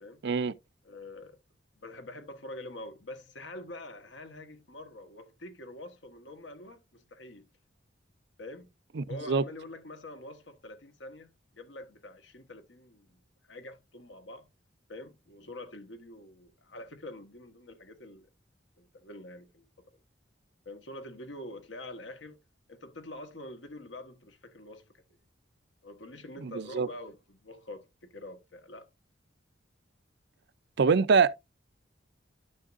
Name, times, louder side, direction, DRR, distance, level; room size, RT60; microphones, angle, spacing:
voice 1, 0.2-0.5 9.0-9.4 26.4-26.9 30.8-31.4, right 5 dB, 65° right, 0.5 m, -25 dB
voice 2, 0.8-1.4 1.8-7.5 8.4-8.7 9.1-13.2 13.5-14.5 14.9-18.3 18.8-19.9 20.6-22.4 22.7-24.9 25.8-28.9, left 1 dB, 70° left, 1.4 m, -45 dB
11.5 x 6.3 x 2.6 m
head